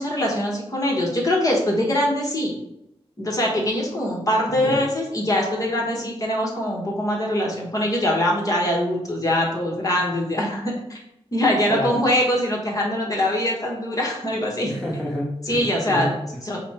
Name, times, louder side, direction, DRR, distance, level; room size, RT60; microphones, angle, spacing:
voice 1, 0.0-2.6 3.2-11.0 11.3-14.7 15.5-16.1 16.4-16.6, left 1 dB, 30° left, -2 dB, 1.2 m, -23 dB
voice 2, 11.7-12.0 14.6-16.4, equal, 5° left, -5 dB, 0.9 m, -29 dB
5.4 x 2.1 x 4.2 m, 0.83 s
wide cardioid pair, 120°, 11 cm